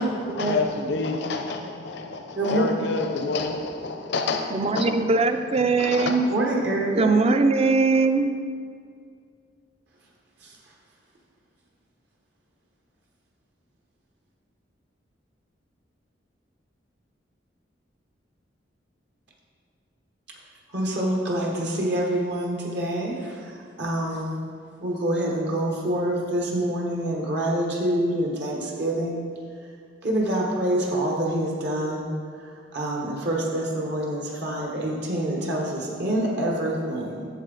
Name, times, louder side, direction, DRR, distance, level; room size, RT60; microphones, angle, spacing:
voice 1, 0.4-4.9 5.8-6.2, left 3 dB, 65° left, 4 dB, 0.6 m, -28 dB
voice 2, 4.5-6.3 7.0-8.3, right 3 dB, 35° right, 8 dB, 0.4 m, -21 dB
voice 3, 6.3-7.3 10.4-10.6 20.7-24.4 24.8-29.2 30.0-32.1 32.7-37.3, right 1 dB, 65° right, -2 dB, 1.2 m, -26 dB
8.2 x 7.1 x 3.9 m, 2.2 s
head